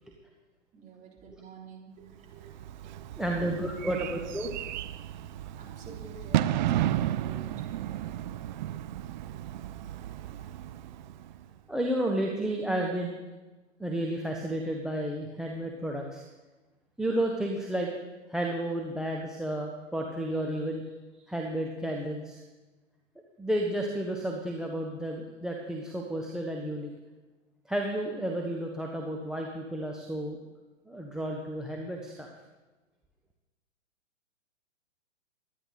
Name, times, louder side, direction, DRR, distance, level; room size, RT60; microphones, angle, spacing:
voice 1, 0.7-2.6 2.8-3.0 5.5-7.6, right 5 dB, 20° right, -2 dB, 3.5 m, -48 dB
Bird / Fireworks, 2.3-11.5, right 12 dB, 40° right, 0.6 m, -33 dB
voice 2, 3.2-4.5 11.7-13.1 13.8-16.2 17.0-17.9 18.3-20.8 21.2-22.4 23.4-26.9 27.7-30.4 30.9-32.3, right 1 dB, ahead, 1 dB, 1.0 m, -32 dB
24.0 x 10.0 x 4.1 m, 1.2 s
hypercardioid pair, 125°, 38 cm